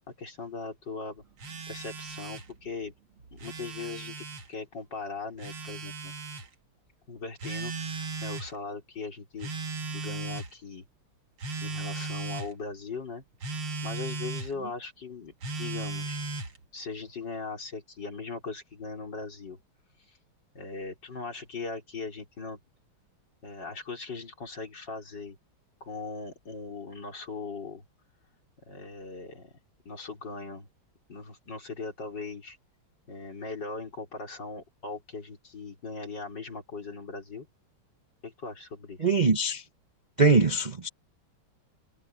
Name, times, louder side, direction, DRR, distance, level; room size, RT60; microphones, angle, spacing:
voice 1, 0.1-1.2 1.7-2.9 3.3-6.1 7.1-9.5 9.9-10.8 11.6-13.2 13.8-16.2 16.7-19.6 20.1-20.2 20.5-22.6 23.4-25.4 25.8-27.8 28.7-29.5 29.8-30.7 31.1-32.6 33.1-37.5 38.2-39.1, left 4 dB, 55° left, 5.1 m, -39 dB
Telephone, 1.4-2.5 3.2-4.5 5.4-6.5 7.4-8.5 9.4-10.5 11.4-12.5 13.4-14.5 15.4-16.6, right 3 dB, 75° right, 3.1 m, -36 dB
voice 2, 39.0-39.6 40.2-40.9, right 3 dB, 30° right, 0.9 m, -22 dB
omnidirectional pair, 2.3 m